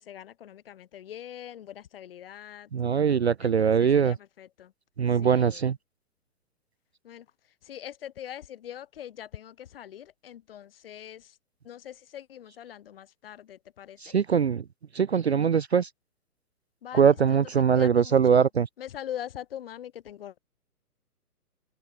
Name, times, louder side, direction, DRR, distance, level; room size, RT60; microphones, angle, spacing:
voice 1, 0.0-2.7 3.4-4.7 5.2-5.6 7.0-7.2 7.7-11.3 11.6-14.1 16.8-17.4 17.7-18.5 18.8-20.4, left 10 dB, 35° left, 6.0 m, -42 dB
voice 2, 2.7-4.2 5.0-5.8 14.0-14.6 14.9-15.9 16.9-18.7, right 7 dB, 45° right, 0.7 m, -22 dB
figure-of-eight pair, 135°, 46 cm